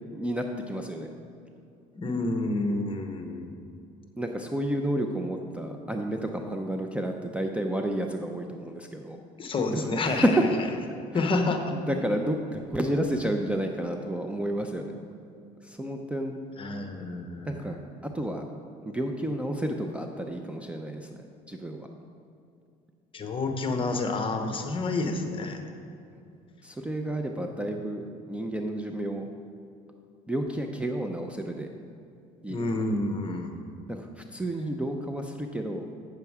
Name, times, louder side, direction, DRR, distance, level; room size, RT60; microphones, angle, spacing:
voice 1, 0.1-1.1 4.2-9.2 9.6-10.5 11.1-11.3 11.9-14.9 15.6-16.3 17.4-17.8 18.0-18.4 18.8-21.9 26.6-28.0 28.3-29.3 30.3-31.7 32.4-32.7 33.9-35.9, right 1 dB, 5° right, 3 dB, 0.5 m, -30 dB
voice 2, 1.9-3.5 9.4-10.5 11.1-11.8 16.6-17.8 23.1-25.6 32.5-33.6, left 2 dB, 30° left, 5 dB, 1.0 m, -29 dB
7.9 x 6.8 x 4.8 m, 2.5 s
cardioid pair, 105°, 16 cm